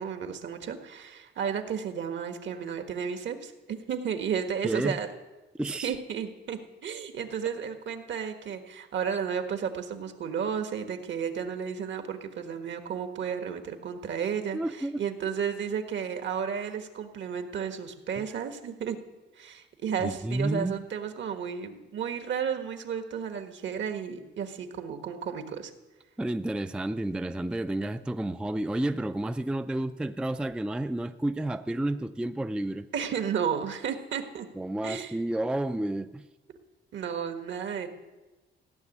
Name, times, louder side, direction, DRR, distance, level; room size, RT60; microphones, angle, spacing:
voice 1, 0.0-5.1 5.8-19.0 19.4-25.7 32.9-34.5 34.8-35.2 36.9-37.9, right 7 dB, 65° right, 7 dB, 1.5 m, -33 dB
voice 2, 4.6-5.0 5.6-5.9 14.5-15.0 18.2-18.3 20.0-20.8 26.2-32.9 34.6-36.3, right 1 dB, 5° right, 10 dB, 0.4 m, -31 dB
16.0 x 7.1 x 9.9 m, 1.1 s
cardioid pair, 115°, 21 cm